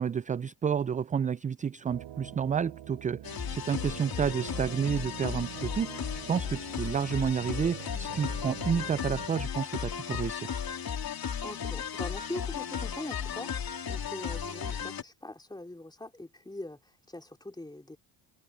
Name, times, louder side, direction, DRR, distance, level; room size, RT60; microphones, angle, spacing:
voice 1, 0.0-10.5, right 7 dB, 20° right, 0.3 m, -30 dB
sound 1, 1.9-9.3, right 12 dB, 60° right, 4.5 m, -45 dB
sound 2, 3.2-15.0, left 8 dB, 45° left, 3.4 m, -35 dB
voice 2, 11.4-18.0, left 2 dB, 10° left, 3.6 m, -42 dB
supercardioid pair, 65°, 50 cm